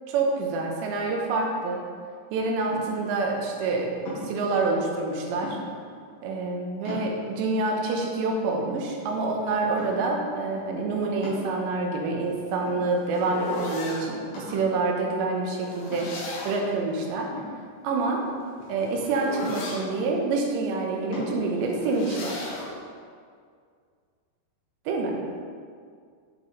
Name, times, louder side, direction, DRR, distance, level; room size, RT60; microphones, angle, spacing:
voice 1, 0.1-1.8 2.3-4.0 4.2-5.6 6.2-16.1 16.4-17.3 17.8-18.2 18.7-22.5 24.9-25.2, right 3 dB, 80° right, 0 dB, 3.3 m, -27 dB
sound 1, 2.7-3.1 4.1-4.5 5.4-5.9 6.4-6.5 6.9-7.5 8.0-8.1 8.5-9.3 9.8-10.2 11.2-12.0 12.7-13.3 13.6-13.7 14.3-14.8 15.9-16.4 17.3-18.2 19.4-20.0 21.1-21.4, left 2 dB, 55° left, 4.1 m, -38 dB
sound 2, 12.3-14.1 15.6-16.7 18.2-19.9 21.6-22.7, left 2 dB, 80° left, 3.7 m, -36 dB
10.5 x 7.6 x 3.3 m, 2.1 s
omnidirectional pair, 5.1 m